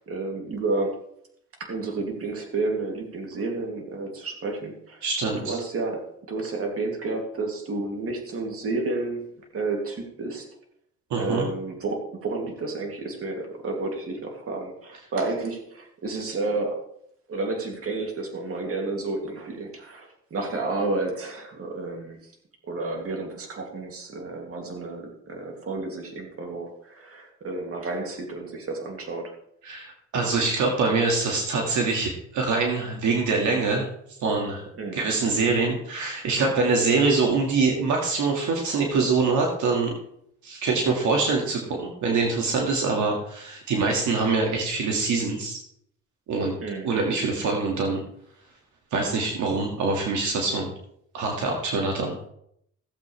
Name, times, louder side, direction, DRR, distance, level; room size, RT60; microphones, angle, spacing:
voice 1, 0.1-0.9 1.6-5.0 5.4-9.2 9.5-10.5 11.2-16.8 17.3-22.2 22.7-29.3 34.8-35.0 46.6-46.9, right 3 dB, 50° right, 1 dB, 2.7 m, -31 dB
voice 2, 5.0-5.6 11.1-11.5 29.6-33.9 34.2-34.6 34.9-39.9 40.4-45.6 46.3-46.5 46.8-48.0 48.9-50.7 51.1-52.1, right 4 dB, 75° right, 0 dB, 2.0 m, -24 dB
16.0 x 7.8 x 3.3 m, 0.71 s
cardioid pair, 90°, 30 cm